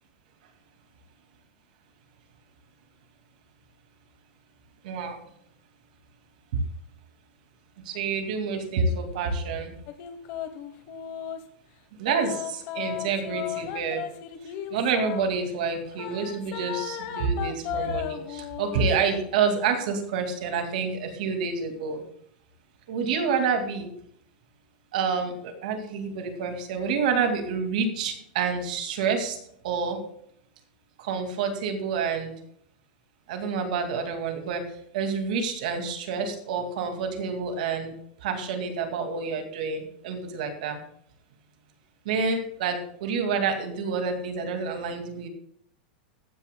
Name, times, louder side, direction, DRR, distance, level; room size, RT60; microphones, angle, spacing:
voice 1, 4.8-5.2 6.5-6.6 7.9-9.7 12.0-14.0 14.7-22.0 22.9-23.9 24.9-29.4 29.6-30.0 31.0-32.3 33.3-34.6 34.9-37.9 38.2-40.8 42.1-45.3, right 5 dB, 55° right, 5 dB, 2.2 m, -28 dB
sound 1, 9.9-11.4 12.1-15.2 15.9-18.9, left 10 dB, 35° left, 1.1 m, -35 dB
14.5 x 10.0 x 2.2 m, 0.69 s
supercardioid pair, 180°, 5 cm